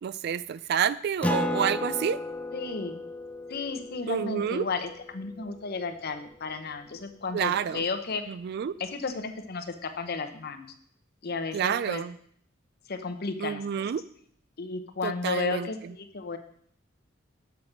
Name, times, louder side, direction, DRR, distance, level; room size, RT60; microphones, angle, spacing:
voice 1, 0.0-2.2 4.1-4.6 7.3-7.8 8.3-8.7 11.5-12.2 13.4-14.0 15.0-15.9, right 8 dB, 55° right, 16 dB, 0.3 m, -29 dB
Acoustic guitar, 1.2-6.2, left 2 dB, 5° left, 0.4 m, -34 dB
voice 2, 2.5-3.0 3.5-8.2 8.8-10.7 11.2-12.0 12.9-13.9 14.6-16.4, left 4 dB, 50° left, 7 dB, 0.8 m, -33 dB
6.5 x 5.8 x 5.9 m, 0.64 s
head